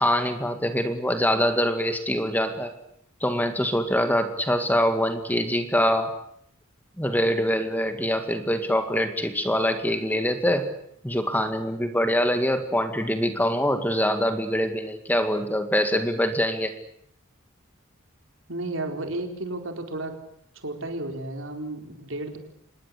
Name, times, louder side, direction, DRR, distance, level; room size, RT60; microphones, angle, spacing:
voice 1, 0.0-2.7 3.2-6.1 7.0-10.7 11.0-16.7, equal, 10° left, 7 dB, 2.0 m, -24 dB
voice 2, 18.5-20.1 20.6-22.4, right 2 dB, 65° right, 4 dB, 4.3 m, -32 dB
26.5 x 20.5 x 8.4 m, 0.70 s
head